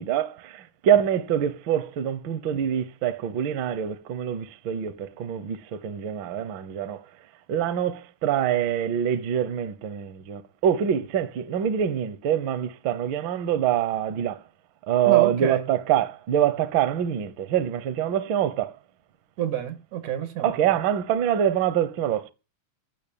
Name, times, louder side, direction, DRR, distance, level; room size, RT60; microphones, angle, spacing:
voice 1, 0.0-7.0 7.5-14.4 14.9-18.7 20.4-22.3, right 10 dB, 65° right, 1.2 m, -25 dB
voice 2, 15.0-15.6 19.4-20.5, right 11 dB, 90° right, 3.1 m, -28 dB
15.5 x 5.9 x 8.9 m
omnidirectional pair, 3.3 m